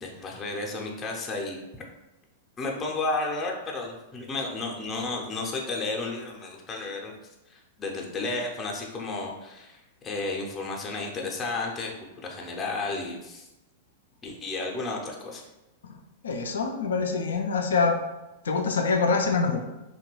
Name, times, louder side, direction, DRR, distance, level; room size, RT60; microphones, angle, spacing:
voice 1, 0.0-1.6 2.6-7.1 7.5-13.5 14.2-15.4, left 3 dB, 25° left, -1 dB, 0.5 m, -32 dB
voice 2, 16.2-18.0 18.4-19.6, left 4 dB, 70° left, 3 dB, 0.3 m, -25 dB
2.8 x 2.2 x 3.0 m, 0.99 s
figure-of-eight pair, 100°, 0 cm